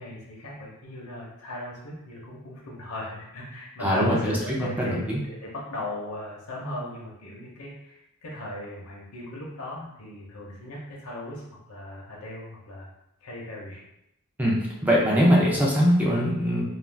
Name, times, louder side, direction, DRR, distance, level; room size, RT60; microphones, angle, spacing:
voice 1, 0.0-11.4 11.7-12.9 13.2-13.8, left 1 dB, 65° left, -4 dB, 0.7 m, -37 dB
voice 2, 3.8-4.3 4.6-5.2 14.4-16.6, equal, 5° right, -4 dB, 0.5 m, -22 dB
2.4 x 2.2 x 3.3 m, 0.82 s
head